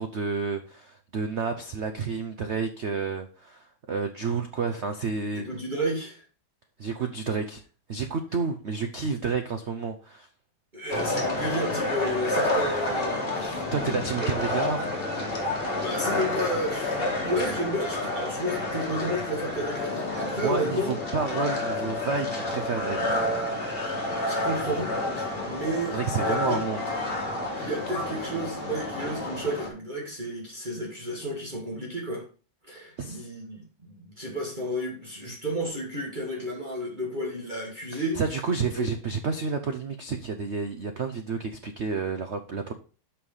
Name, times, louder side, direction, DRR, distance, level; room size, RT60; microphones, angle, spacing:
voice 1, 0.0-5.4 6.8-7.6 7.9-10.3 13.7-14.9 20.4-23.1 25.9-26.8 33.0-33.3 37.9-42.7, right 5 dB, 80° right, 0.6 m, -30 dB
voice 2, 5.3-6.2 10.7-13.9 14.2-14.3 15.6-20.9 23.9-24.0 24.2-26.6 27.5-32.2 32.6-38.2 38.6-38.9, right 1 dB, 25° right, 2.0 m, -32 dB
sound 1, 10.9-29.7, left 2 dB, 30° left, 2.0 m, -29 dB
6.5 x 5.8 x 5.4 m
omnidirectional pair, 2.2 m